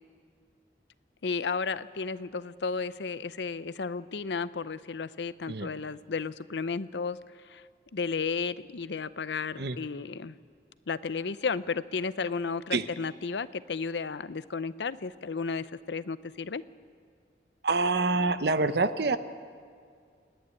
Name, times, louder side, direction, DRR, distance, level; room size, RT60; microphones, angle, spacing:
voice 1, 1.2-7.2 7.4-7.6 7.9-10.4 10.9-16.6, left 5 dB, 85° left, 15 dB, 0.6 m, -33 dB
voice 2, 17.6-19.2, right 3 dB, 70° right, 11 dB, 0.9 m, -26 dB
27.5 x 10.5 x 9.5 m, 2.2 s
head